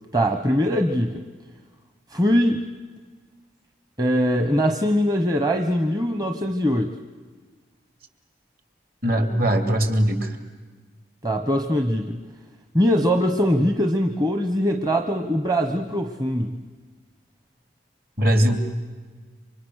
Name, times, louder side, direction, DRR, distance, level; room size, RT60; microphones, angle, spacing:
voice 1, 0.1-1.2 2.1-2.6 4.0-7.0 11.2-12.2 12.7-16.6, equal, 20° right, 5 dB, 1.1 m, -22 dB
voice 2, 9.0-10.3 18.2-18.6, equal, 50° right, 6 dB, 2.9 m, -20 dB
29.5 x 25.5 x 6.5 m, 1.4 s
head